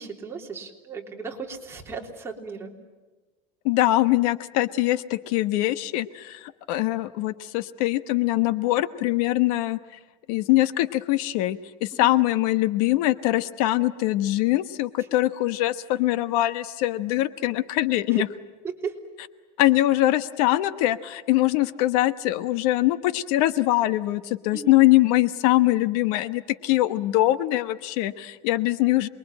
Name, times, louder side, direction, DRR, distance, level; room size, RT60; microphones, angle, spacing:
voice 1, 0.0-2.7 11.9-12.2 15.0-15.1 18.1-18.2 18.6-19.0 24.5-24.7, right 5 dB, 15° right, -1 dB, 3.4 m, -35 dB
voice 2, 3.6-9.8 10.3-18.3 19.6-29.1, left 16 dB, 70° left, 13 dB, 1.1 m, -23 dB
28.0 x 22.5 x 9.0 m, 1.3 s
cardioid pair, 160°, 19 cm